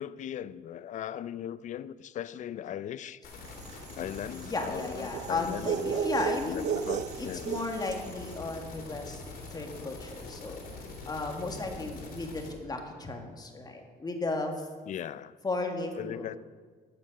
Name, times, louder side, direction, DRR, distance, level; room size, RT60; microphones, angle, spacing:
voice 1, 0.0-3.2 3.8-7.5 14.9-15.3 16.0-16.4, left 10 dB, 45° left, 17 dB, 0.4 m, -39 dB
sound 1, 3.2-12.5, left 3 dB, 60° left, 3.4 m, -44 dB
sound 2, 3.6-8.1, right 8 dB, 45° right, 0.4 m, -34 dB
voice 2, 4.3-6.7 7.2-9.2 9.5-10.6 11.1-14.7 15.4-16.3, left 2 dB, 25° left, 3 dB, 1.8 m, -34 dB
12.0 x 7.6 x 6.4 m, 1.5 s
cardioid pair, 110°, 17 cm